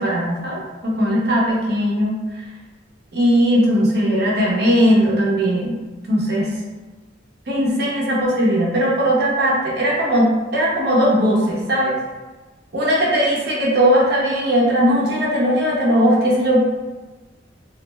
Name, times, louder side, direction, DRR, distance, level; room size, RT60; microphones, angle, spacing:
voice 1, 0.0-2.2 3.1-5.8 6.1-6.5 7.5-11.9 12.7-16.6, equal, 55° right, -5 dB, 0.7 m, -18 dB
2.4 x 2.1 x 3.2 m, 1.2 s
head